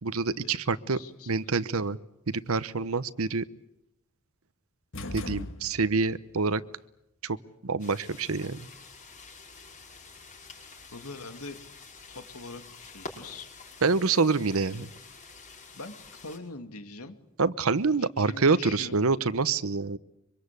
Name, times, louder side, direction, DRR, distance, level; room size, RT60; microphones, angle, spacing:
voice 1, 0.0-1.0 1.3-2.0 2.3-3.5 5.1-6.6 7.2-7.4 7.6-8.7 13.8-14.9 17.4-20.0, right 4 dB, 75° right, 15 dB, 0.9 m, -26 dB
voice 2, 0.9-1.6 10.9-11.6 12.1-13.5 15.7-17.2 18.0-19.0, left 3 dB, 90° left, 9 dB, 2.3 m, -43 dB
sound 1, 4.9-6.2, left 2 dB, 60° left, 1.8 m, -38 dB
sound 2, 7.8-16.4, left 4 dB, 35° left, 5.6 m, -48 dB
25.0 x 24.5 x 8.3 m, 0.83 s
head